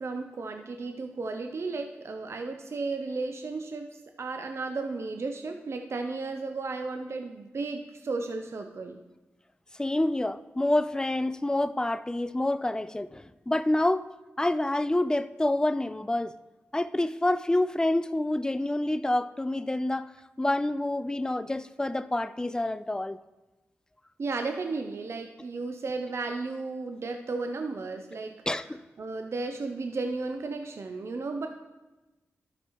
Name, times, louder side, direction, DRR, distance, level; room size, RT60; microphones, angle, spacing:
voice 1, 0.0-9.0 24.2-28.4 29.0-31.5, right 3 dB, 60° right, 0.6 m, -34 dB
voice 2, 9.8-14.1 14.4-16.3 16.7-20.1 20.4-23.2 28.5-28.8, left 1 dB, 15° left, 0.4 m, -27 dB
12.5 x 5.9 x 3.0 m
cardioid pair, 40°, 5 cm